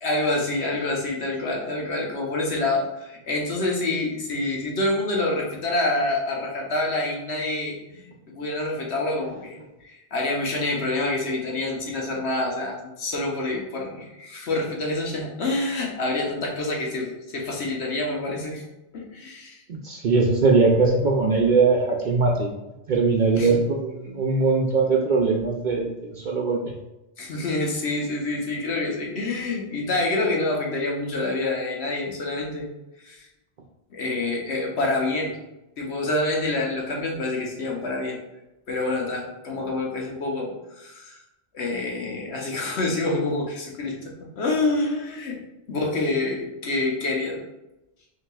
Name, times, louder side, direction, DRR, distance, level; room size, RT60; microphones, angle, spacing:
voice 1, 0.0-18.6 18.9-19.6 23.3-23.6 27.2-32.7 33.0-33.3 33.9-35.4 35.8-38.2 38.7-41.2 41.5-45.4 45.7-47.4, left 2 dB, 70° left, -1 dB, 1.2 m, -27 dB
voice 2, 19.8-22.5 22.9-26.7, right 4 dB, 60° right, 0 dB, 0.5 m, -21 dB
5.7 x 2.9 x 2.3 m, 0.94 s
omnidirectional pair, 1.2 m